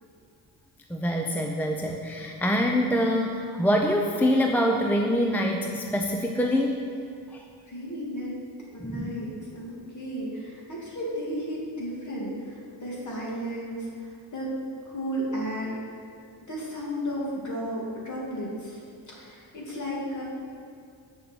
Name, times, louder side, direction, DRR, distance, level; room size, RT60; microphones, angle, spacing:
voice 1, 0.9-6.9 7.3-7.4 8.8-9.1, equal, 5° left, 2 dB, 0.5 m, -25 dB
voice 2, 7.7-8.3 8.7-14.5 14.8-15.8 16.5-18.8 19.1-20.2, equal, 40° left, -4 dB, 2.6 m, -34 dB
8.3 x 6.5 x 6.1 m, 2.3 s
cardioid pair, 125°, 44 cm